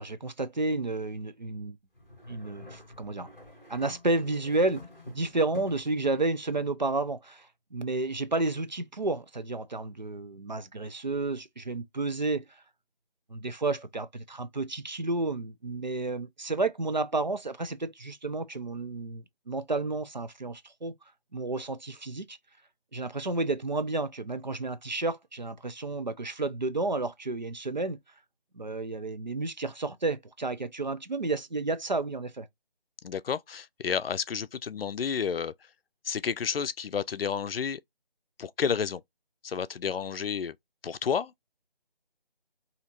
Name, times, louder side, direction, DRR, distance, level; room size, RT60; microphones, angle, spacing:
voice 1, 0.0-1.8 2.3-3.3 3.7-12.6 13.3-20.9 21.3-22.4 22.9-28.0 28.5-32.5, right 2 dB, 50° right, 0.5 m, -31 dB
sound 1, 1.9-6.0, left 2 dB, 5° right, 1.8 m, -47 dB
voice 2, 33.0-35.5 36.0-37.8 38.4-39.0 39.4-40.6 40.8-41.3, left 7 dB, 80° left, 0.5 m, -31 dB
4.2 x 2.8 x 2.5 m
figure-of-eight pair, 180°, 29 cm